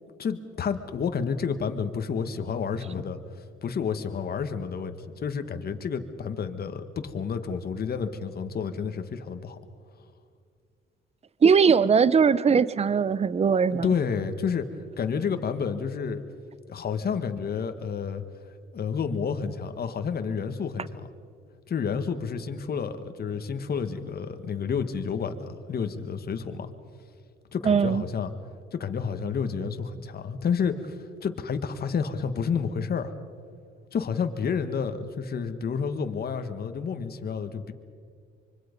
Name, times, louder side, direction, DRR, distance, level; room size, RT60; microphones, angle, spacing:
voice 1, 0.2-3.2 3.6-9.6 13.7-14.7 15.0-16.2 16.7-18.2 18.7-21.1 21.7-26.7 27.5-28.3 28.7-33.1 33.9-37.7, left 6 dB, 50° left, 8 dB, 1.7 m, -30 dB
voice 2, 11.4-13.9 27.6-28.0, right 6 dB, 30° right, 18 dB, 0.7 m, -20 dB
25.0 x 24.0 x 5.3 m, 2.2 s
cardioid pair, 90°, 20 cm